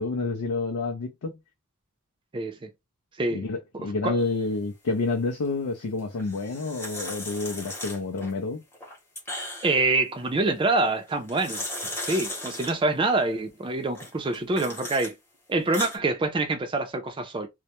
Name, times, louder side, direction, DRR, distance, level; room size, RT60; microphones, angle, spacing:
voice 1, 0.0-1.4 3.3-8.6, left 3 dB, 85° left, 0.4 m, -29 dB
voice 2, 2.3-2.7 3.2-3.5 3.7-4.1 9.6-11.6 12.1-15.1 15.5-17.5, right 2 dB, 25° right, 0.4 m, -26 dB
sound 1, 6.2-8.3 8.7-9.9 11.1-12.7 13.9-15.1 15.5-16.0, left 1 dB, 10° left, 0.8 m, -36 dB
2.2 x 2.0 x 2.8 m
head